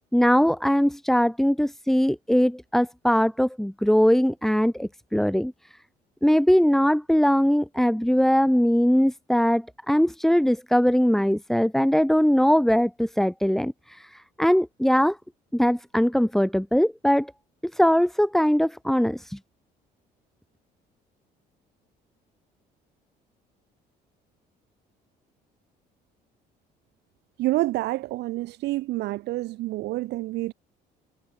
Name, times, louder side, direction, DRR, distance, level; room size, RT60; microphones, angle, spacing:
voice 1, 0.1-5.5 6.2-15.2 15.5-17.3 17.7-19.4, equal, ahead, 6.9 m, -21 dB
voice 2, 27.4-30.5, right 18 dB, 85° right, 5.2 m, -28 dB
cardioid pair, 110°, 17 cm